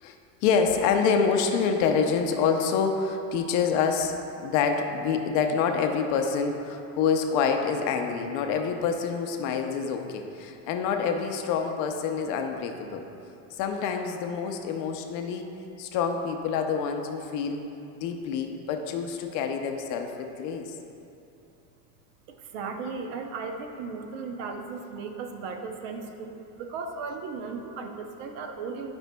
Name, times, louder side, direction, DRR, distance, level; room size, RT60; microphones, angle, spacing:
voice 1, 0.4-13.1 13.5-15.5 15.8-17.6 18.0-20.8, left 6 dB, 50° left, 5 dB, 0.5 m, -27 dB
voice 2, 22.3-28.9, right 4 dB, 65° right, 4 dB, 0.7 m, -36 dB
12.0 x 5.2 x 2.2 m, 2.8 s
cardioid pair, 170°, 40 cm